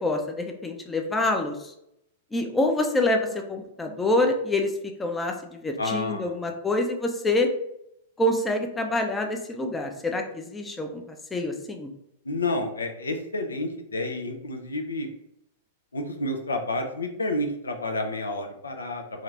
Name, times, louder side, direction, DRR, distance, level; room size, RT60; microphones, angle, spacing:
voice 1, 0.0-1.6 2.3-4.7 5.0-7.5 8.2-11.0 11.3-11.9, left 2 dB, 15° left, 3 dB, 0.5 m, -26 dB
voice 2, 5.8-6.4 12.2-15.1 15.9-19.2, left 2 dB, 90° left, 4 dB, 0.4 m, -30 dB
2.7 x 2.5 x 3.2 m, 0.79 s
hypercardioid pair, 105°, 0 cm